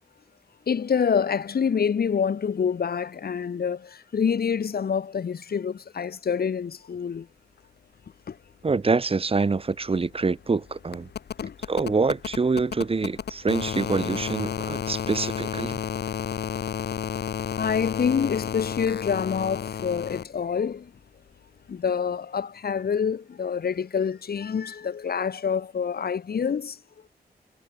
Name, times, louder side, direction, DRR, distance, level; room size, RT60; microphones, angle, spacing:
voice 1, 0.7-7.3 8.3-8.4 11.4-11.5 17.6-20.9 21.7-26.8, left 6 dB, 70° left, 3.8 m, -27 dB
voice 2, 8.6-11.1 11.7-15.8, right 4 dB, 35° right, 2.7 m, -25 dB
sound 1, 9.4-20.2 21.7-21.8, left 8 dB, 85° left, 1.1 m, -32 dB
wide cardioid pair, 155°, 17 cm